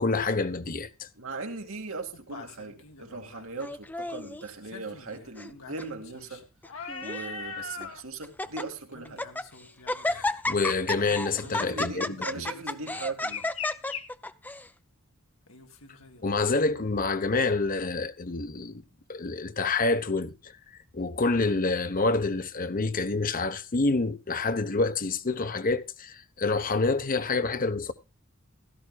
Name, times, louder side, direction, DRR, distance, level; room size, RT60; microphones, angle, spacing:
voice 1, 0.0-1.1 10.1-12.4 16.2-18.8 19.1-20.5 20.9-27.9, left 3 dB, 45° left, 1.0 m, -27 dB
sound 1, 0.6-0.7 2.1-3.5 4.6-8.0 8.4-8.6 8.9-10.4 10.9-11.6 12.0-14.0 15.5-16.6 17.4-17.5, left 4 dB, 85° left, 2.0 m, -43 dB
voice 2, 1.2-6.4 7.0-9.2 11.4-13.5, right 3 dB, 85° right, 2.2 m, -39 dB
Laughter, 3.6-4.4 5.1-5.5 5.8-5.9 6.6-7.3 7.8-7.9 8.2-8.6 9.1-9.5 9.9-14.7, left 2 dB, 10° left, 0.5 m, -32 dB
16.0 x 13.5 x 2.4 m
head